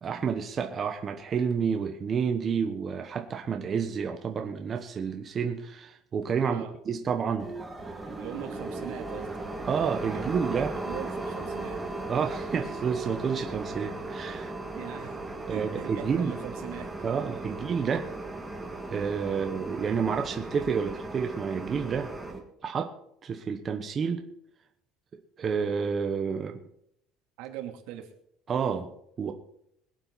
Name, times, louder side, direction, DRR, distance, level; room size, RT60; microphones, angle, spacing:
voice 1, 0.0-7.5 9.6-10.7 12.1-14.5 15.5-16.3 17.0-18.1 18.9-22.1 22.6-22.9 23.2-24.2 25.4-26.6 28.5-28.9 29.2-29.3, right 6 dB, 25° right, 4 dB, 1.0 m, -29 dB
sound 1, 7.4-22.4, right 2 dB, 5° right, 1.9 m, -37 dB
voice 2, 8.1-9.3 10.1-10.3 10.8-11.8 14.7-16.9 17.5-17.6 19.3-19.5 27.4-28.1, right 11 dB, 80° right, 3 dB, 2.8 m, -40 dB
23.5 x 8.9 x 4.1 m, 0.74 s
cardioid pair, 175°, 0 cm